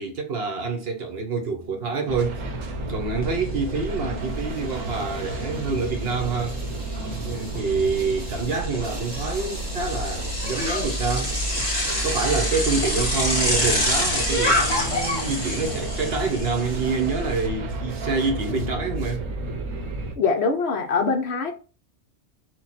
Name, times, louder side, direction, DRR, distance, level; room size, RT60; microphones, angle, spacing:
voice 1, 0.0-2.6 2.8-6.6 7.1-11.4 12.0-19.3, right 4 dB, 55° right, 0.9 m, -27 dB
sound 1, 1.5-18.7, right 2 dB, 25° right, 1.0 m, -43 dB
sound 2, 2.1-20.1, right 1 dB, 90° right, 1.3 m, -31 dB
Bicycle, 3.2-3.3 3.7-17.5, left 1 dB, 20° left, 1.8 m, -28 dB
voice 2, 20.2-21.5, left 4 dB, 60° left, 0.9 m, -23 dB
4.4 x 2.3 x 4.0 m
omnidirectional pair, 1.3 m